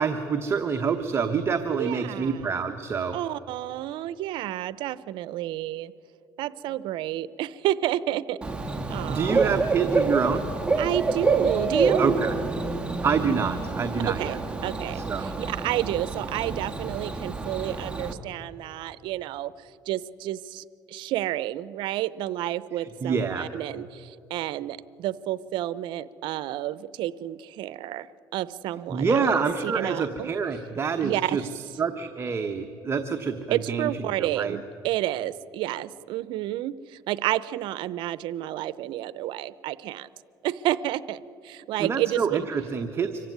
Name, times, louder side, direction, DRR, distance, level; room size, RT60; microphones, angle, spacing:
voice 1, 0.0-3.2 9.1-10.5 12.0-12.3 13.0-14.4 14.9-15.3 22.8-23.5 28.9-31.4 31.8-33.9 34.2-34.6 41.8-43.2, right 5 dB, 30° right, 6 dB, 1.0 m, -27 dB
voice 2, 1.8-2.5 3.1-5.9 6.4-8.4 8.9-9.6 10.8-12.0 14.1-28.1 28.3-29.2 29.6-30.3 31.0-31.5 33.5-40.1 40.4-42.5, right 14 dB, 80° right, 18 dB, 0.6 m, -30 dB
Bird / Cricket, 8.4-18.1, right 3 dB, 10° right, 1.5 m, -27 dB
25.0 x 15.5 x 9.4 m, 2.8 s
cardioid pair, 115°, 8 cm